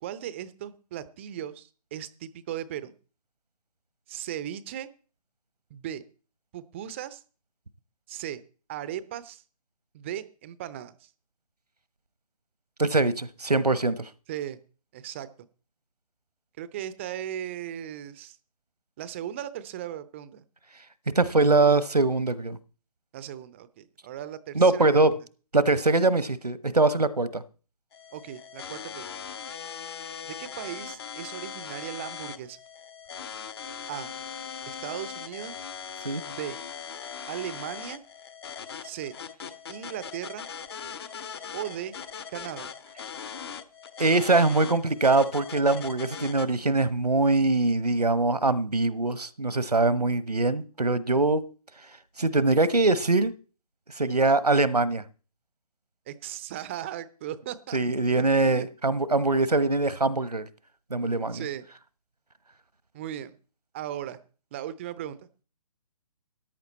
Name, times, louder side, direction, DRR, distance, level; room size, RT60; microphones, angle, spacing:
voice 1, 0.0-2.9 4.1-4.9 5.7-6.0 6.5-7.2 8.1-8.4 8.7-9.4 9.9-11.1 14.3-14.6 14.9-15.5 16.6-18.4 19.0-20.4 23.1-25.1 28.1-29.1 30.2-32.6 33.9-34.1 34.7-35.6 36.2-36.6 37.3-38.0 38.8-39.1 39.7-40.5 41.5-41.9 42.3-42.7 56.1-57.8 58.1-58.7 61.3-61.7 62.9-63.4 63.7-64.2 64.5-65.2, right 11 dB, 20° right, 0.6 m, -37 dB
voice 2, 12.8-14.0 21.1-22.6 24.5-25.2 25.5-27.4 36.0-36.2 44.0-51.5 52.2-53.3 54.0-55.0 57.7-60.4 60.9-61.4, right 3 dB, 80° right, 1.1 m, -23 dB
sound 1, 27.9-46.5, left 7 dB, 40° left, 0.9 m, -40 dB
13.5 x 11.0 x 4.3 m
figure-of-eight pair, 140°, 20 cm